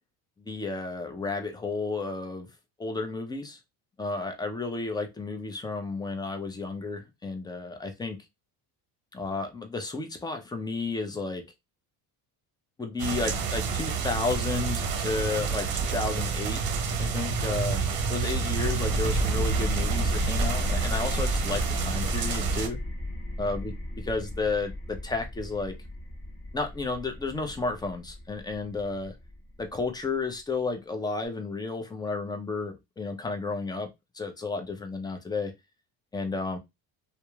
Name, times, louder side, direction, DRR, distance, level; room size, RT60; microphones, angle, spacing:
voice 1, 0.4-2.5 2.8-3.6 4.0-8.2 9.1-11.4 12.8-16.6 17.0-17.8 18.1-22.8 23.4-23.7 24.1-25.7 26.5-29.2 29.6-33.9 34.1-35.5 36.1-36.6, left 3 dB, 10° left, 0.4 m, -32 dB
sound 1, 13.0-22.7, right 5 dB, 45° right, 0.7 m, -29 dB
sound 2, 18.3-29.7, left 1 dB, 25° left, 1.3 m, -33 dB
2.8 x 2.0 x 2.2 m
supercardioid pair, 75°, 49 cm